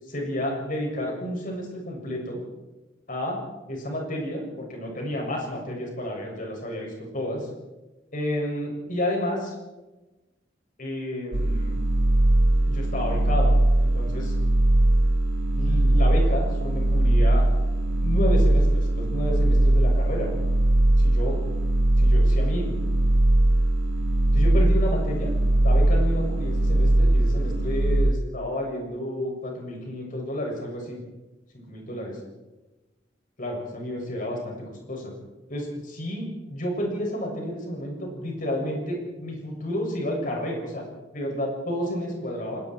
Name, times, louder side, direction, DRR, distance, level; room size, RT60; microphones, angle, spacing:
voice 1, 0.1-2.4 3.1-3.4 3.7-7.5 8.1-9.5 10.8-11.8 12.7-13.5 13.8-14.3 15.6-17.4 18.0-20.3 21.0-21.4 22.0-22.7 24.3-25.3 25.6-31.0 31.7-32.1 33.4-35.1 35.5-40.8 41.1-42.6, left 1 dB, 45° left, 0 dB, 7.2 m, -31 dB
sound 1, 11.3-28.1, right 1 dB, 85° right, 1.2 m, -20 dB
28.5 x 20.0 x 4.7 m, 1.1 s
head